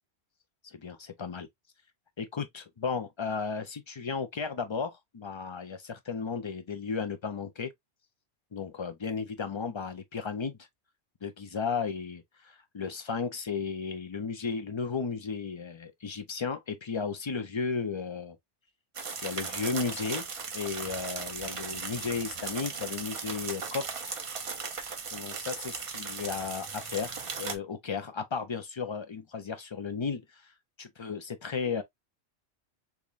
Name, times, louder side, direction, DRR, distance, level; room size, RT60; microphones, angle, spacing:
voice 1, 0.7-1.5 2.2-7.7 8.5-10.6 11.2-18.4 19.2-20.3 20.5-24.1 25.1-30.4 30.8-31.8, left 5 dB, 40° left, 0.4 m, -34 dB
sound 1, 18.9-27.6, right 5 dB, 40° right, 0.5 m, -37 dB
3.5 x 3.1 x 2.4 m
omnidirectional pair, 1.1 m